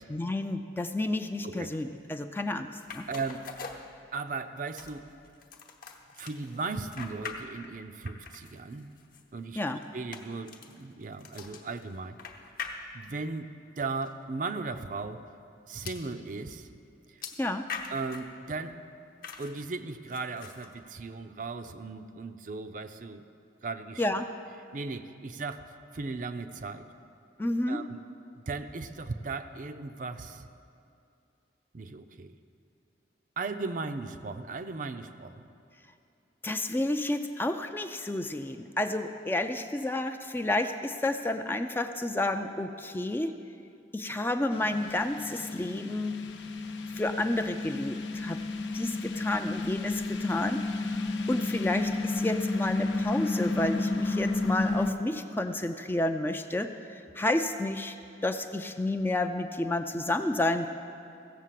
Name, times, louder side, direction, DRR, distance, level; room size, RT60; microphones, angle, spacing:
voice 1, 0.1-3.0 9.6-9.8 17.4-17.7 24.0-24.3 27.4-27.8 36.4-43.4 43.9-46.2 46.9-48.4 48.7-58.0 58.2-60.7, left 1 dB, 10° left, 7 dB, 0.4 m, -30 dB
voice 2, 1.4-1.8 3.1-3.5 4.1-5.1 6.2-8.9 9.3-9.6 9.9-12.2 12.9-15.2 15.7-16.7 17.1-17.2 17.9-18.8 19.4-23.2 23.6-24.1 24.7-26.9 27.7-28.0 28.5-30.5 31.7-32.4 33.4-35.5, right 3 dB, 45° right, 9 dB, 0.5 m, -37 dB
sound 1, 2.8-4.4 4.8-7.8 8.1-13.3 14.0-14.1 14.5-14.6 15.9-16.1 17.2-18.3 19.2-19.7 20.1-20.7, left 5 dB, 50° left, 0.9 m, -43 dB
sound 2, 44.5-54.9, left 2 dB, 80° left, 0.8 m, -32 dB
15.5 x 7.3 x 7.5 m, 2.5 s
head